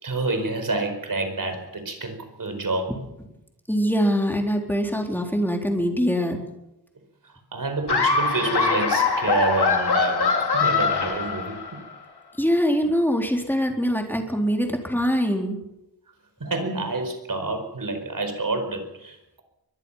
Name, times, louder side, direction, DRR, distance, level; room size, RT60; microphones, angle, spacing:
voice 1, 0.0-2.9 7.2-11.8 16.4-19.4, right 3 dB, 55° right, 6 dB, 4.9 m, -28 dB
voice 2, 3.7-6.4 12.4-15.6, equal, 5° left, 2 dB, 4.1 m, -23 dB
Laughter, 7.9-11.9, left 4 dB, 80° left, 3.9 m, -22 dB
23.5 x 22.0 x 5.8 m, 0.90 s
wide cardioid pair, 110°, 39 cm